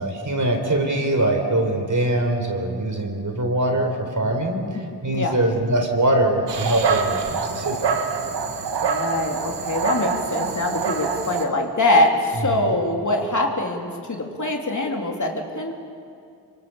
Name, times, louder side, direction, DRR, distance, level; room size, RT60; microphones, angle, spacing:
voice 1, 0.0-7.8, right 1 dB, 45° right, 3 dB, 4.3 m, -23 dB
Dog, 6.5-11.4, right 5 dB, 85° right, 1.7 m, -25 dB
voice 2, 8.8-15.7, left 2 dB, 45° left, 1 dB, 3.4 m, -23 dB
26.0 x 24.0 x 7.3 m, 2.4 s
cardioid pair, 55°, 41 cm